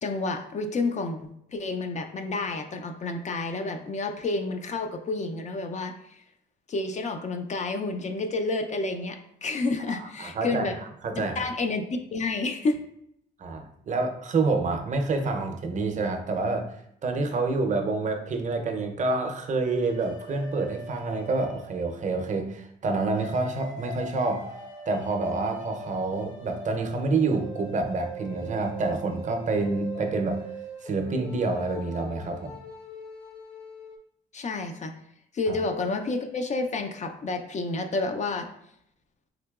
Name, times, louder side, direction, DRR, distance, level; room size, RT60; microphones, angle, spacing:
voice 1, 0.0-6.2 6.7-10.8 11.4-12.8 34.3-34.9 35.3-38.5, left 3 dB, 35° left, 6 dB, 0.4 m, -30 dB
voice 2, 9.9-10.7 11.0-11.4 13.4-16.8 17.0-24.5 24.9-30.4 30.8-32.6 35.5-35.6, right 3 dB, 40° right, 5 dB, 0.5 m, -28 dB
sound 1, 19.6-22.2 23.1-34.0, equal, 70° left, 1.4 m, -42 dB
3.7 x 2.8 x 2.3 m, 0.73 s
cardioid pair, 90°, 20 cm